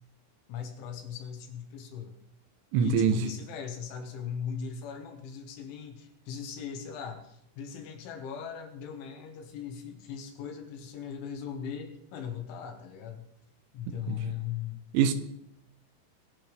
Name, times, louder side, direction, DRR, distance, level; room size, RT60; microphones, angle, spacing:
voice 1, 0.5-2.2 2.7-13.2 13.7-14.8, left 7 dB, 75° left, 3.9 m, -38 dB
voice 2, 2.7-3.2 14.1-14.3 14.9-15.1, right 7 dB, 80° right, 3.4 m, -24 dB
25.0 x 9.7 x 3.5 m
omnidirectional pair, 5.6 m